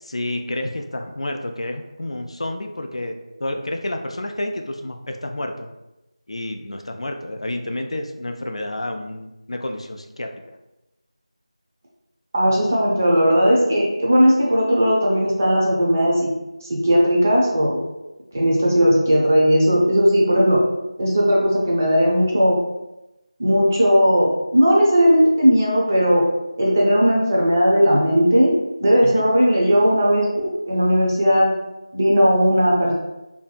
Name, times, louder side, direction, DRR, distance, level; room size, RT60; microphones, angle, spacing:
voice 1, 0.0-5.7 6.3-10.4 29.0-29.2, left 1 dB, 60° left, 4 dB, 0.3 m, -30 dB
voice 2, 12.3-16.3 16.6-17.8 18.3-20.6 21.0-22.6 23.4-26.3 26.6-28.5 28.8-31.5 31.9-32.9, equal, 25° right, -3 dB, 0.4 m, -17 dB
2.6 x 2.6 x 2.2 m, 0.97 s
figure-of-eight pair, 175°, 3 cm